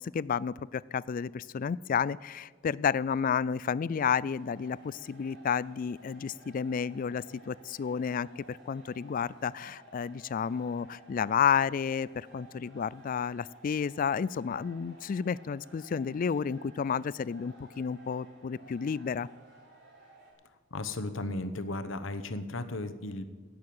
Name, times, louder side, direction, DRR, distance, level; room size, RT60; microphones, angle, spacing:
voice 1, 0.0-19.3, left 7 dB, 40° left, 21 dB, 0.3 m, -31 dB
sound 1, 4.2-20.3, right 2 dB, 60° right, 4.5 m, -56 dB
voice 2, 20.7-23.3, left 2 dB, 70° left, 10 dB, 1.0 m, -35 dB
17.0 x 6.7 x 8.7 m, 1.5 s
head